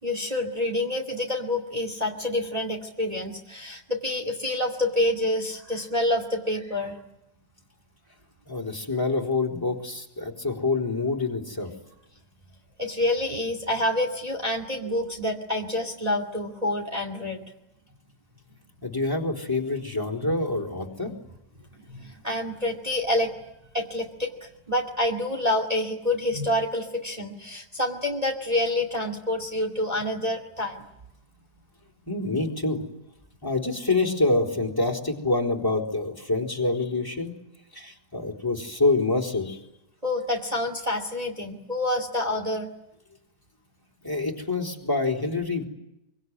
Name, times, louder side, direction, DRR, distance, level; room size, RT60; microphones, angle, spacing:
voice 1, 0.0-7.0 12.8-17.4 20.2-20.4 21.7-23.3 23.7-24.3 24.7-30.8 40.0-42.7, left 1 dB, 20° right, 2 dB, 2.5 m, -27 dB
voice 2, 8.5-11.7 18.8-21.1 32.1-32.8 33.4-37.3 37.7-39.6 44.0-45.7, left 3 dB, 10° left, 0 dB, 3.9 m, -26 dB
24.5 x 24.0 x 9.6 m, 0.86 s
omnidirectional pair, 1.9 m